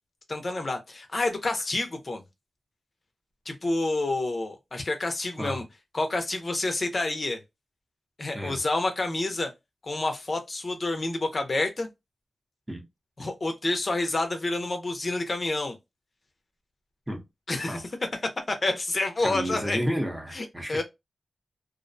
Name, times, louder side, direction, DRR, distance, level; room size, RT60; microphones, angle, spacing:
voice 1, 0.3-2.2 3.5-5.6 5.9-7.4 8.2-9.5 9.8-11.9 13.2-15.7 17.5-17.8 18.5-19.8 20.3-20.8, left 2 dB, 45° left, 0.5 m, -28 dB
voice 2, 19.2-20.8, equal, 10° right, 0.6 m, -31 dB
2.4 x 2.1 x 2.4 m
wide cardioid pair, 135°, 0 cm